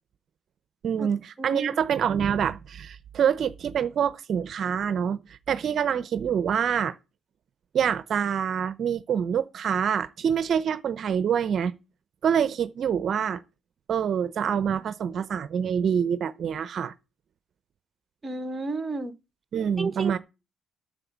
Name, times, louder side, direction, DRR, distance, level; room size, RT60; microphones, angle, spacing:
voice 1, 0.8-6.9 7.7-11.7 12.2-13.4 13.9-16.9 19.5-20.2, right 8 dB, 60° right, 0.7 m, -26 dB
voice 2, 1.4-1.7 18.2-19.2 19.8-20.2, right 3 dB, 25° right, 1.2 m, -31 dB
9.0 x 7.4 x 7.3 m
cardioid pair, 90°, 0 cm